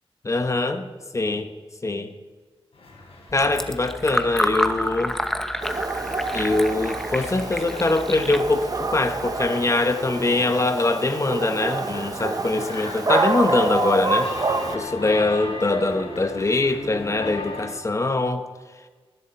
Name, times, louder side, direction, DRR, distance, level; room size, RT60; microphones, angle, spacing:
voice 1, 0.2-0.9 1.1-1.5 1.8-2.1 3.3-5.2 6.3-14.3 14.7-18.4, left 2 dB, 30° left, 8 dB, 1.2 m, -23 dB
sound 1, 2.7-17.7, left 2 dB, 80° left, 4.2 m, -39 dB
Fill (with liquid), 3.3-9.5, equal, 5° left, 0.9 m, -29 dB
Dog, 5.6-14.8, right 3 dB, 40° right, 1.2 m, -27 dB
19.0 x 11.5 x 4.6 m, 1.4 s
wide cardioid pair, 100°, 10 cm